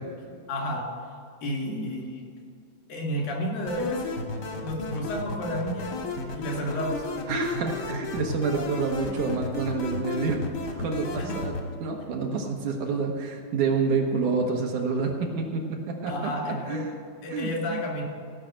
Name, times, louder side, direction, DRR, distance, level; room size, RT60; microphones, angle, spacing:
voice 1, 0.5-0.8 1.4-2.3 2.9-4.1 4.6-6.0 6.3-7.1 16.1-16.8 17.2-18.0, equal, 90° left, -1 dB, 4.2 m, -31 dB
sound 1, 3.7-11.7, left 3 dB, 55° left, 1.2 m, -34 dB
voice 2, 7.3-10.4 10.8-16.1 16.4-16.9 17.3-17.8, right 4 dB, 65° right, 1 dB, 2.4 m, -28 dB
16.5 x 5.8 x 7.5 m, 2.2 s
omnidirectional pair, 4.0 m